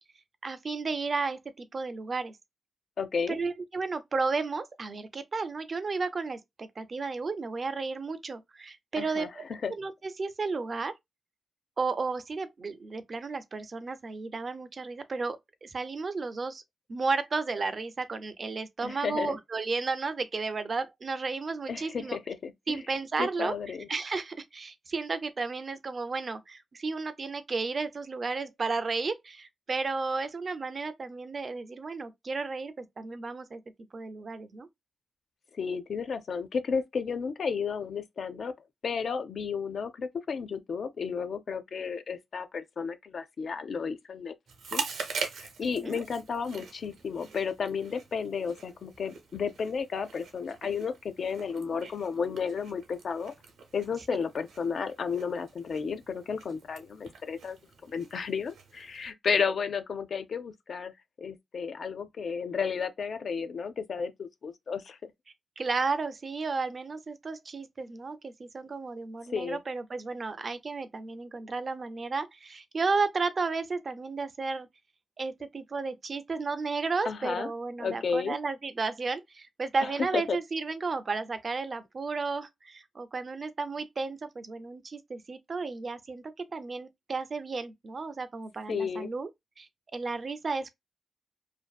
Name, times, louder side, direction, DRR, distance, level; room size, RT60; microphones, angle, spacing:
voice 1, 0.4-2.3 3.3-9.4 9.8-10.9 11.8-16.6 16.9-22.2 22.7-23.6 23.9-33.6 33.9-34.7 45.6-46.0 65.6-74.7 75.2-89.3 89.6-90.7, right 4 dB, 35° right, 0.4 m, -33 dB
voice 2, 3.0-3.4 9.0-9.7 18.8-19.4 21.7-22.8 23.2-23.9 35.6-38.5 38.8-44.3 44.7-44.8 45.4-53.3 53.7-57.6 57.8-60.9 61.2-65.0 69.3-69.6 77.1-77.5 77.8-78.4 80.0-80.4 88.7-89.1, left 6 dB, 50° left, 0.4 m, -32 dB
Chewing mastication, 44.5-59.1, right 5 dB, 85° right, 0.7 m, -43 dB
2.5 x 2.5 x 2.2 m
wide cardioid pair, 150°, 0 cm